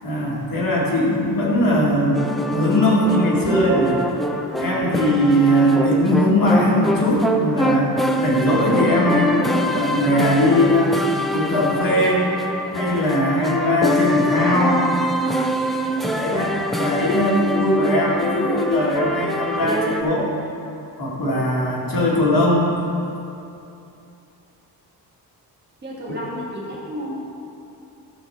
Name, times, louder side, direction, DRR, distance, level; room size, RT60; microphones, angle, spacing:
voice 1, 0.0-4.0 4.6-7.9 8.2-11.0 11.3-12.3 12.7-14.8 16.2-20.3 21.0-22.7, left 1 dB, 60° left, -5 dB, 2.2 m, -20 dB
sound 1, 2.1-20.0, equal, ahead, 0.3 m, -24 dB
voice 2, 25.8-27.2, equal, 25° right, -6 dB, 2.0 m, -31 dB
13.5 x 4.5 x 6.5 m, 2.7 s
wide cardioid pair, 170°, 38 cm